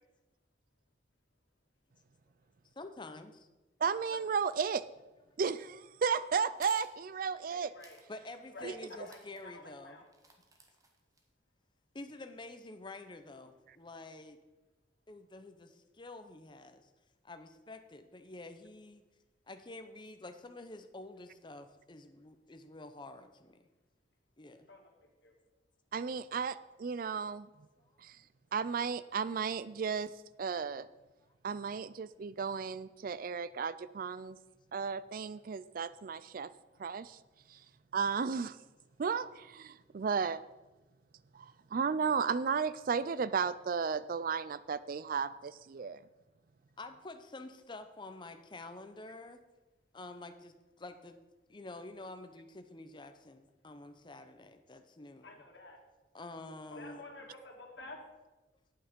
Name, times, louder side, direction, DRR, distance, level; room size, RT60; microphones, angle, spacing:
voice 1, 2.8-3.3 8.1-10.1 11.9-14.4 15.1-16.9 17.2-19.0 19.5-23.6 24.4-24.7 36.7-36.9 46.8-49.4 49.9-51.2 51.5-55.4 56.1-57.3, left 2 dB, 25° left, 8 dB, 0.7 m, -48 dB
voice 2, 3.8-4.8 5.4-7.7 8.6-8.7 25.9-27.5 28.0-28.2 28.5-30.1 30.4-30.9 31.4-34.4 34.7-36.5 36.8-37.2 37.5-37.6 37.9-38.6 39.0-40.4 41.3-46.0, right 6 dB, 50° right, 16 dB, 0.4 m, -34 dB
sound 1, 6.6-6.9 7.8-8.1 8.4-8.5 9.0-9.4 10.1-11.3, right 3 dB, 20° right, 1.1 m, -56 dB
voice 3, 7.5-8.0 8.5-9.2 9.4-10.1 24.7-24.8 25.2-25.3 55.2-55.8 56.7-58.0, left 2 dB, 70° left, 1 dB, 1.9 m, -49 dB
8.7 x 8.4 x 5.2 m, 1.1 s
head